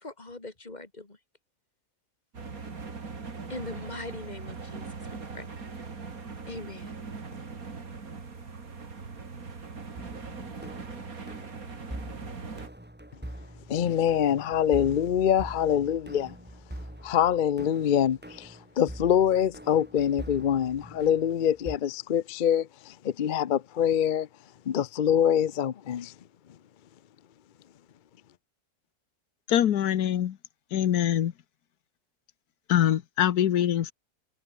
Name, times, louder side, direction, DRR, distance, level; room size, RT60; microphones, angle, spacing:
voice 1, 0.0-1.2 3.5-5.5 6.5-7.0, left 2 dB, 25° left, 3.0 m, -41 dB
sound 1, 2.3-12.7, right 4 dB, 65° right, 3.0 m, -40 dB
sound 2, 9.9-21.8, right 1 dB, 5° right, 2.4 m, -44 dB
voice 2, 13.7-16.3 17.0-24.3 24.7-26.1, left 9 dB, 60° left, 0.5 m, -25 dB
voice 3, 29.5-30.4 30.7-31.3 32.7-33.9, left 10 dB, 85° left, 1.5 m, -24 dB
omnidirectional pair, 1.6 m